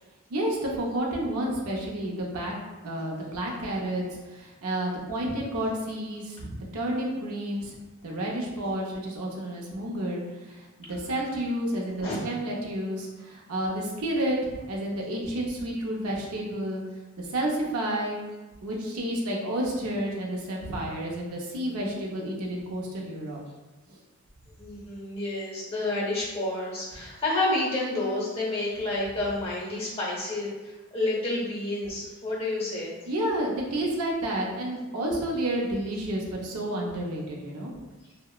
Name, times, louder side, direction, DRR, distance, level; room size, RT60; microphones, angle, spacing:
voice 1, 0.3-2.5 2.8-7.8 8.0-16.8 17.2-18.2 18.6-23.4 23.9-24.0 33.1-37.7, right 1 dB, 85° right, -2 dB, 0.5 m, -30 dB
voice 2, 24.6-33.0, left 2 dB, 25° left, -5 dB, 0.7 m, -29 dB
2.8 x 2.0 x 2.3 m, 1.2 s
head